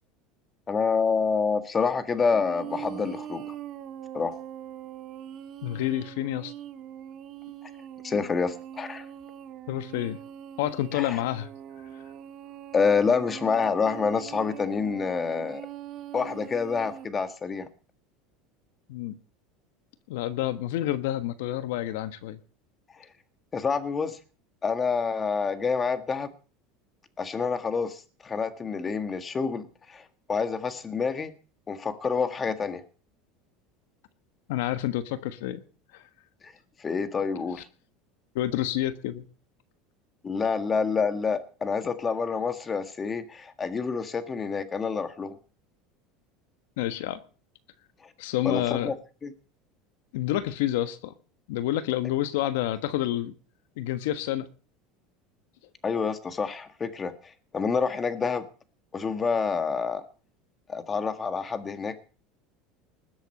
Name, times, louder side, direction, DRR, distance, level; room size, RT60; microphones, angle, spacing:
voice 1, 0.7-3.5 4.1-4.4 8.0-9.0 10.9-11.2 12.7-15.7 16.1-17.7 23.0-23.1 23.5-24.2 24.6-26.3 27.2-31.3 31.7-32.8 36.4-36.5 36.8-37.6 40.2-45.4 48.0-48.1 48.4-48.9 49.2-49.3 55.8-58.4 58.9-60.0 60.7-62.0, left 5 dB, 20° left, 11 dB, 1.6 m, -28 dB
sound 1, 2.3-17.1, right 10 dB, 40° right, 1.5 m, -42 dB
voice 2, 5.6-6.5 9.7-10.2 10.6-11.5 18.9-19.1 20.1-22.4 34.5-35.6 35.9-36.0 37.6-37.7 38.3-39.3 46.8-47.2 48.2-48.9 50.1-51.1 51.5-53.3 53.8-54.5, left 13 dB, 80° left, 12 dB, 1.4 m, -29 dB
20.0 x 8.1 x 6.5 m, 0.38 s
supercardioid pair, 140°, 0 cm